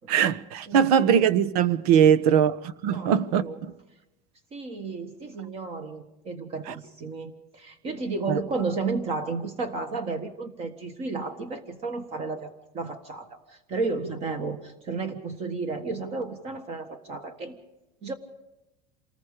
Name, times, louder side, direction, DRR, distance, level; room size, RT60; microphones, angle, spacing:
voice 1, 0.1-2.5 2.8-3.4 8.3-8.4, right 8 dB, 85° right, 1.2 m, -20 dB
voice 2, 0.7-1.1 2.9-3.6 4.5-17.6 18.0-18.1, right 3 dB, 35° right, 1.5 m, -33 dB
27.5 x 20.0 x 5.0 m
cardioid pair, 165°, 19 cm